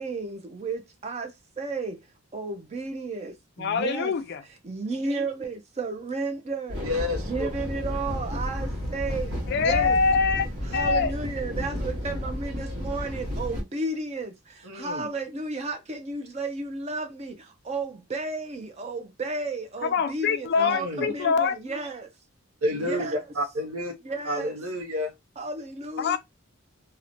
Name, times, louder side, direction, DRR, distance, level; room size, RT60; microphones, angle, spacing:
voice 1, 0.0-2.0 2.3-4.1 4.6-6.9 7.3-10.0 10.7-22.1 22.8-23.2 24.0-24.6 25.4-26.2, right 3 dB, 30° right, 0.4 m, -33 dB
voice 2, 3.6-4.4 9.5-11.1 19.8-21.6 26.0-26.2, left 5 dB, 50° left, 0.3 m, -24 dB
sound 1, 6.7-13.6, equal, 65° right, 1.1 m, -32 dB
voice 3, 6.8-7.5 14.6-15.1 20.6-21.1 22.6-23.9 24.3-25.1, left 1 dB, 80° right, 0.7 m, -30 dB
2.9 x 2.1 x 2.5 m
head